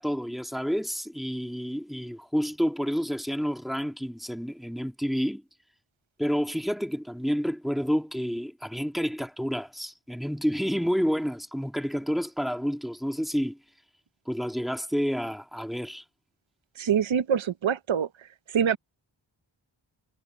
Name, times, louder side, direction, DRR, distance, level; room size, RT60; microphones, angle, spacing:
voice 1, 0.0-5.4 6.2-13.6 14.3-16.0, equal, ahead, 2.1 m, -29 dB
voice 2, 16.8-18.1 18.5-18.8, right 8 dB, 75° right, 0.7 m, -24 dB
wide cardioid pair, 55°, 47 cm